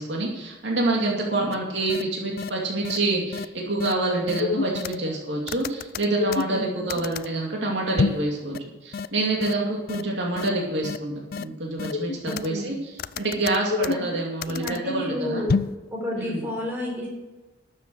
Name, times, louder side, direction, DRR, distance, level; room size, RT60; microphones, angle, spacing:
voice 1, 0.0-8.6 8.8-15.4 16.2-16.4, right 2 dB, 65° right, -2 dB, 2.5 m, -27 dB
sound 1, 1.5-1.6 1.9-2.0 2.4-2.5 2.8-3.0 3.3-3.4 3.8-3.9 4.3-5.1 5.5-7.3 8.0-8.3 8.5-8.6 8.9-9.1 9.4-9.5 9.9-10.0 10.4-10.5 10.8-11.0 11.3-11.4 11.8-12.6 13.0-14.8 15.5-15.8, left 5 dB, 50° left, 0.4 m, -27 dB
voice 2, 6.5-7.0 12.3-12.7 13.9-14.2 14.5-15.6 15.9-17.1, left 1 dB, 10° right, -4 dB, 4.3 m, -31 dB
12.5 x 7.4 x 6.4 m, 1.2 s
head